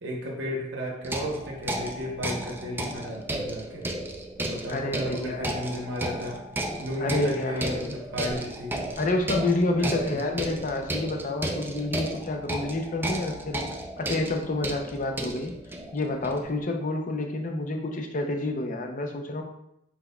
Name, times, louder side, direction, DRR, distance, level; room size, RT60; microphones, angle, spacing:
voice 1, 0.0-3.9 4.4-6.4 6.8-8.8 9.8-10.2, equal, 65° right, -2 dB, 0.8 m, -34 dB
sound 1, 1.0-16.6, right 1 dB, 10° right, 0.3 m, -34 dB
voice 2, 4.7-5.5 7.0-7.9 9.0-13.6 14.0-15.5 15.9-19.4, left 2 dB, 45° left, 4 dB, 0.5 m, -29 dB
4.2 x 4.2 x 2.2 m, 0.80 s
head